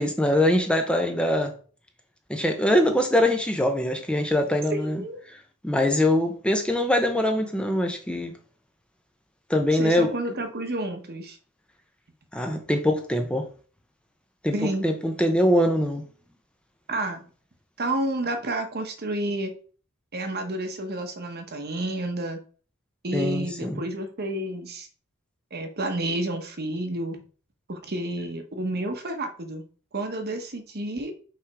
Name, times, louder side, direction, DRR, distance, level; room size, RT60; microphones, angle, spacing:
voice 1, 0.0-1.5 2.3-5.0 5.3-5.4 5.6-8.4 9.5-10.4 12.3-13.5 14.4-16.0 23.1-23.8, left 1 dB, 5° left, 0.6 m, -23 dB
voice 2, 4.7-5.3 9.7-11.4 14.5-14.9 16.9-17.2 17.8-19.6 20.1-22.4 23.0-24.9 25.5-27.2 27.7-29.6 29.9-31.1, right 1 dB, 45° right, 1.0 m, -30 dB
5.8 x 3.6 x 4.7 m
head